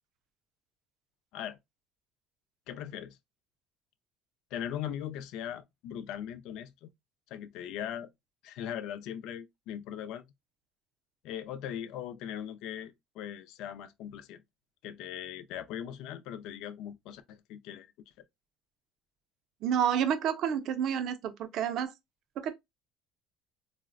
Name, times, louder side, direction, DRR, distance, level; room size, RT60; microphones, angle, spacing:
voice 1, 2.7-3.2 4.5-6.9 7.3-8.1 8.4-10.2 11.2-14.4 14.8-17.9, left 10 dB, 65° left, 0.3 m, -39 dB
voice 2, 19.6-21.9 22.4-22.5, right 8 dB, 50° right, 0.4 m, -29 dB
3.9 x 2.0 x 2.4 m
cardioid pair, 170°, 0 cm